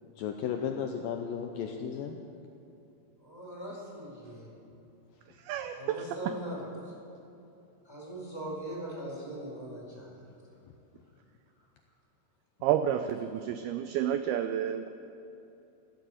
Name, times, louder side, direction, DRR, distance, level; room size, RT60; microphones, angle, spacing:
voice 1, 0.1-2.2, left 7 dB, 85° left, 3 dB, 2.0 m, -34 dB
voice 2, 3.2-4.5 5.7-6.9 7.8-10.1, right 1 dB, 5° left, -6 dB, 4.3 m, -40 dB
voice 3, 5.4-6.3 12.6-14.9, right 10 dB, 85° right, 9 dB, 2.2 m, -30 dB
14.5 x 12.5 x 7.9 m, 2.8 s
omnidirectional pair, 4.9 m